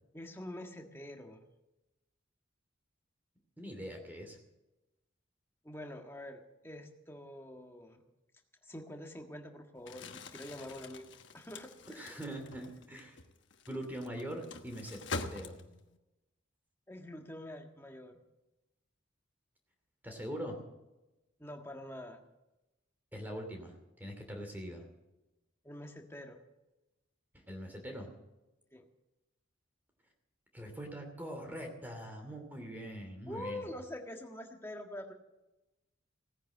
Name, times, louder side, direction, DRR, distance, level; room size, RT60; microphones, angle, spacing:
voice 1, 0.1-1.5 5.6-8.0 8.6-12.1 16.9-18.2 21.4-22.2 25.6-26.4 28.7-28.8 33.3-35.1, left 1 dB, 10° left, 3 dB, 1.6 m, -46 dB
voice 2, 3.6-4.4 12.0-13.2 13.7-15.0 15.3-15.6 20.0-20.6 23.1-24.8 27.5-28.1 30.5-33.6, equal, 10° right, 3 dB, 2.6 m, -42 dB
Crumpling crinkling, 9.8-16.0, left 3 dB, 60° left, 1.2 m, -45 dB
17.5 x 10.0 x 7.4 m, 1.0 s
head